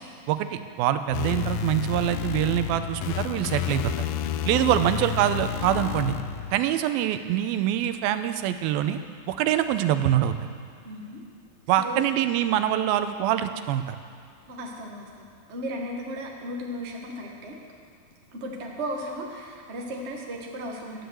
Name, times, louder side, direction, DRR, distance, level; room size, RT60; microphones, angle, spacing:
voice 1, 0.3-4.1 4.5-6.2 6.5-9.0 9.3-10.5 11.7-14.0, right 11 dB, 90° right, 10 dB, 2.5 m, -24 dB
sound 1, 1.1-6.6, left 9 dB, 80° left, 2.0 m, -30 dB
voice 2, 10.8-11.2 11.8-12.1 14.5-15.2 15.5-17.6 18.3-21.1, equal, 60° right, -1 dB, 0.7 m, -35 dB
12.5 x 10.0 x 7.8 m, 2.3 s
omnidirectional pair, 4.2 m